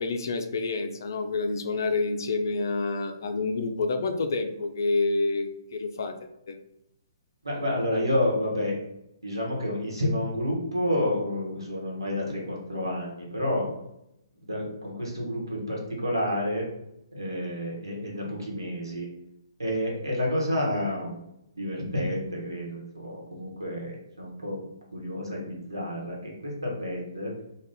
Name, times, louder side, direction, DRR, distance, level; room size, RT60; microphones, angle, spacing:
voice 1, 0.0-6.5, left 3 dB, 60° left, 6 dB, 0.4 m, -28 dB
voice 2, 7.4-8.8 9.2-13.6 14.4-16.6 17.1-19.1 19.6-21.2 21.6-24.6 24.9-27.3, left 1 dB, 85° right, -2 dB, 1.0 m, -29 dB
2.5 x 2.3 x 3.5 m, 0.82 s
figure-of-eight pair, 125°, 2 cm